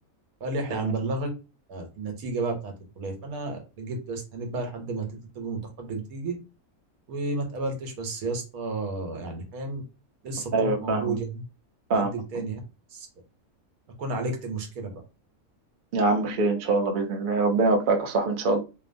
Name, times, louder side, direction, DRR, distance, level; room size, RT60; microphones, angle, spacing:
voice 1, 0.4-1.3 1.7-5.1 5.3-6.4 7.1-9.8 10.2-11.4 11.9-12.6 12.9-13.1 14.0-15.0, right 3 dB, 75° right, 1.2 m, -32 dB
voice 2, 10.5-11.2 11.9-12.1 15.9-18.6, right 3 dB, 60° right, 0.5 m, -24 dB
2.8 x 2.2 x 2.5 m
omnidirectional pair, 1.5 m